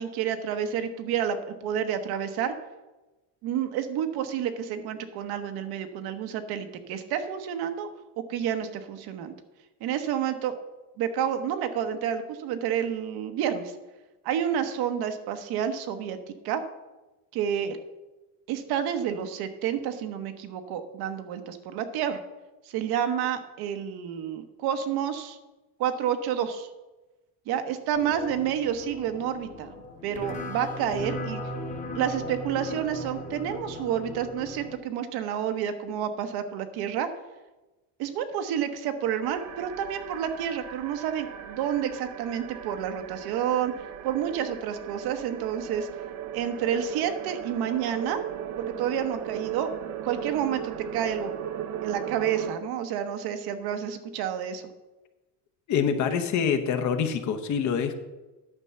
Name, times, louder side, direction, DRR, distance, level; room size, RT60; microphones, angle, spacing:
voice 1, 0.0-2.5 3.4-7.9 8.3-9.3 9.8-10.5 11.0-13.7 14.2-16.2 16.4-16.6 17.3-17.8 18.5-22.2 22.7-25.4 25.8-26.7 27.5-29.7 30.0-31.4 31.9-37.1 38.0-43.7 44.0-45.9 46.3-48.2 48.6-49.7 50.0-51.3 51.8-54.6, right 9 dB, 65° right, 9 dB, 1.0 m, -29 dB
sound 1, 27.9-34.8, left 1 dB, 20° left, 1.2 m, -38 dB
sound 2, 39.2-52.6, right 10 dB, 45° right, 0.7 m, -37 dB
voice 2, 55.7-58.0, left 7 dB, 45° left, 7 dB, 0.9 m, -25 dB
9.8 x 5.4 x 6.8 m, 1.1 s
cardioid pair, 145°, 41 cm